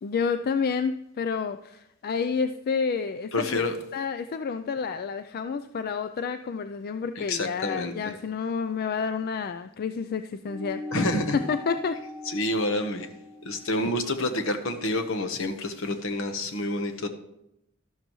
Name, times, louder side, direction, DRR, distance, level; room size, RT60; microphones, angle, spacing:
voice 1, 0.0-3.6 3.9-10.8 11.3-12.5, left 5 dB, 45° left, 10 dB, 0.3 m, -29 dB
voice 2, 3.3-3.7 7.2-7.9 10.9-11.4 12.3-13.1 13.4-17.1, left 1 dB, 70° left, 6 dB, 1.1 m, -28 dB
sound 1, 10.4-15.3, left 1 dB, ahead, 4.4 m, -40 dB
12.5 x 12.0 x 3.1 m, 0.81 s
head